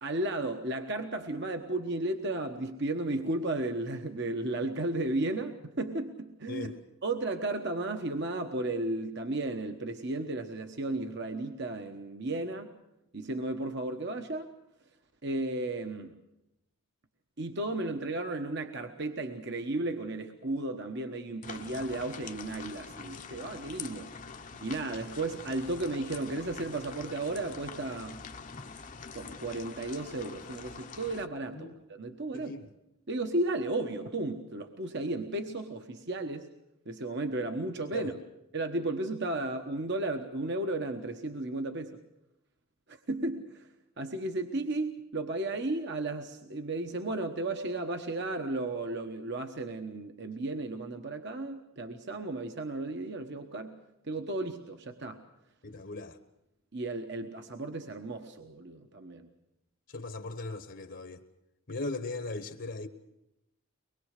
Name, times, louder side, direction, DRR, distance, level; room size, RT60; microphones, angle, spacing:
voice 1, 0.0-6.7 7.0-12.7 13.1-14.5 15.2-16.1 17.4-24.1 24.5-28.2 29.1-32.5 33.1-36.5 36.8-38.1 38.5-42.0 42.9-43.7 44.0-53.8 54.0-55.2 56.7-59.3, right 2 dB, 50° right, 1.2 m, -34 dB
sound 1, 21.4-31.3, left 5 dB, 35° left, 0.8 m, -45 dB
voice 2, 32.3-32.7 37.9-38.1 55.6-56.2 59.9-61.2 61.7-62.9, left 3 dB, 55° left, 1.2 m, -38 dB
24.0 x 21.0 x 6.6 m
head